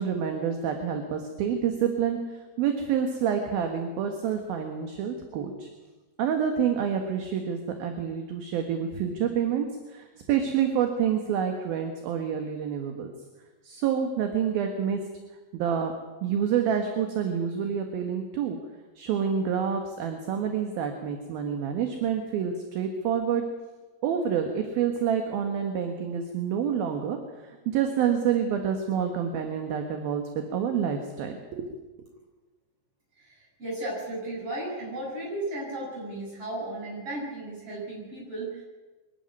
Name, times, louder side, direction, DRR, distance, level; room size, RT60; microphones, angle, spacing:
voice 1, 0.0-2.2 2.6-5.7 6.2-13.1 13.6-15.0 15.5-15.9 16.2-18.6 19.0-23.4 24.0-31.7, right 8 dB, 65° right, 4 dB, 3.0 m, -28 dB
voice 2, 33.6-38.6, right 1 dB, 30° right, -3 dB, 8.6 m, -34 dB
23.0 x 13.0 x 9.5 m, 1.2 s
omnidirectional pair, 5.2 m